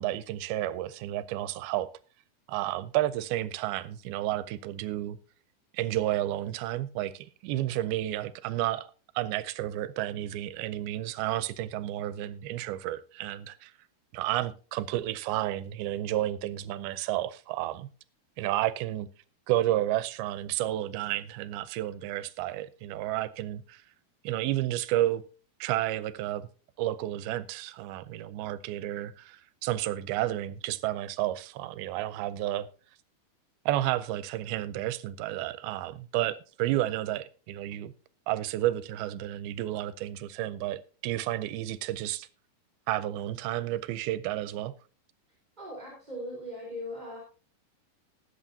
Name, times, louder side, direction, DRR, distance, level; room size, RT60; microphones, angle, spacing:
voice 1, 0.0-1.9 2.5-5.2 5.7-8.9 9.2-13.7 14.1-17.9 18.4-19.1 19.5-23.8 24.2-25.2 25.6-26.5 26.8-32.7 33.7-37.9 38.3-42.3 42.9-44.7, right 14 dB, 85° right, 2.5 m, -31 dB
voice 2, 45.6-47.2, equal, 10° right, 3.7 m, -39 dB
20.0 x 8.4 x 2.7 m
omnidirectional pair, 4.3 m